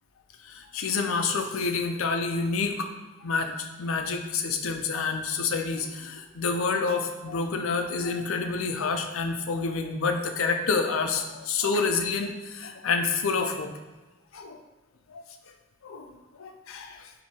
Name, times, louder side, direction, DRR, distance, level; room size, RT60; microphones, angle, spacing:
voice 1, 0.4-2.9 3.2-13.7 14.3-14.6 15.1-15.2 15.8-17.1, left 4 dB, 80° left, 5 dB, 0.5 m, -28 dB
4.1 x 2.7 x 4.5 m, 1.2 s
head